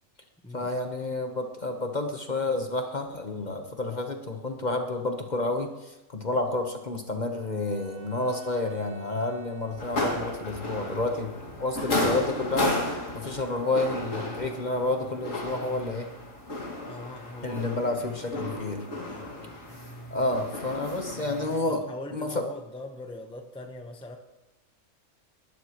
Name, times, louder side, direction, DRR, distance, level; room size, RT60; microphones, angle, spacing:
voice 1, 0.5-11.3 11.6-16.1 17.4-18.8 20.1-21.8 22.1-22.3, left 2 dB, 35° left, 4 dB, 1.2 m, -30 dB
Bowed string instrument, 7.3-10.8, right 2 dB, 85° right, 3.3 m, -51 dB
sound 1, 9.8-21.6, left 2 dB, 70° left, 2.6 m, -33 dB
voice 2, 16.9-17.8 18.1-19.8 21.7-24.2, left 2 dB, 5° left, 4 dB, 0.9 m, -42 dB
19.5 x 12.0 x 3.1 m, 0.99 s
omnidirectional pair, 1.4 m